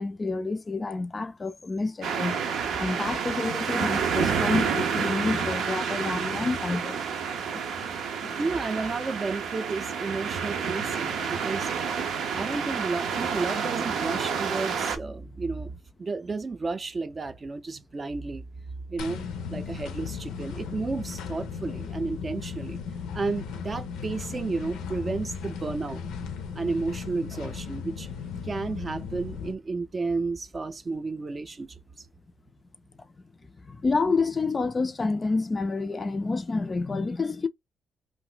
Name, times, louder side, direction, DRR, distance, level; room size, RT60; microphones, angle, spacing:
voice 1, 0.0-2.4 2.8-7.0 7.5-7.7 8.2-8.3 12.3-12.4 20.5-20.6 33.6-37.5, left 3 dB, 30° left, 0.3 m, -28 dB
sound 1, 2.0-15.0, right 6 dB, 75° right, 0.6 m, -29 dB
voice 2, 8.4-11.7 12.3-15.7 16.0-18.4 18.9-19.2 19.5-22.8 23.1-26.0 26.6-28.1 28.4-31.8, right 3 dB, 30° right, 0.4 m, -32 dB
sound 2, 19.0-29.6, left 6 dB, 90° left, 0.5 m, -36 dB
2.5 x 2.0 x 3.8 m
cardioid pair, 90°, 0 cm